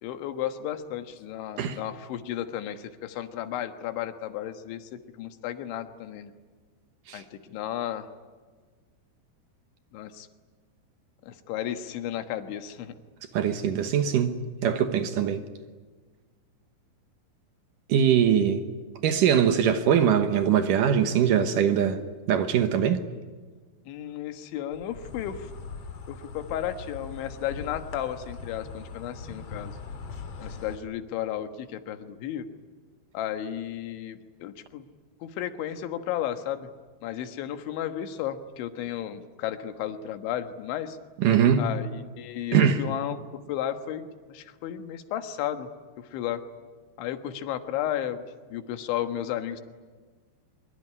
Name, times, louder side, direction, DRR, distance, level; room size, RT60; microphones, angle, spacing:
voice 1, 0.0-6.3 7.1-8.1 9.9-10.3 11.2-13.0 23.9-25.5 26.1-29.8 30.4-32.5 33.1-34.8 35.2-36.7 37.0-41.0 41.6-43.2 43.5-45.7 46.0-46.4 47.0-48.2 48.5-49.6, left 11 dB, 80° left, 3.7 m, -33 dB
voice 2, 13.3-15.4 17.9-18.6 19.0-22.0 22.3-23.0 41.2-41.7 42.5-42.8, right 8 dB, 70° right, 2.0 m, -22 dB
Insect, 24.7-30.8, left 4 dB, 45° left, 2.1 m, -41 dB
24.5 x 23.0 x 9.8 m
omnidirectional pair, 5.4 m